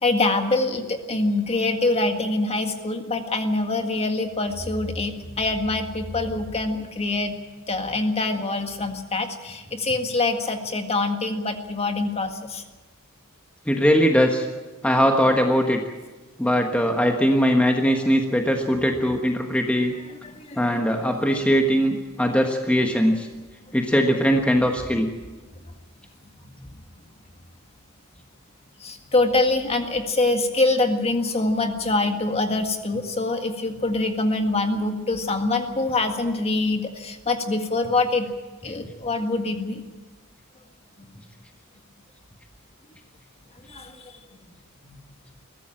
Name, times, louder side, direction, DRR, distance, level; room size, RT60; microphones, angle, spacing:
voice 1, 0.0-7.3 7.7-12.6 17.0-17.1 20.1-20.8 26.6-26.7 28.8-38.3 38.6-39.9 41.0-41.2 43.7-44.2 44.8-45.0, left 2 dB, 30° left, 5 dB, 1.8 m, -25 dB
voice 2, 13.7-14.5 14.8-15.8 16.4-19.9 20.6-23.3 23.7-25.1, equal, 5° left, 2 dB, 1.3 m, -20 dB
22.0 x 15.0 x 8.9 m, 1.3 s
head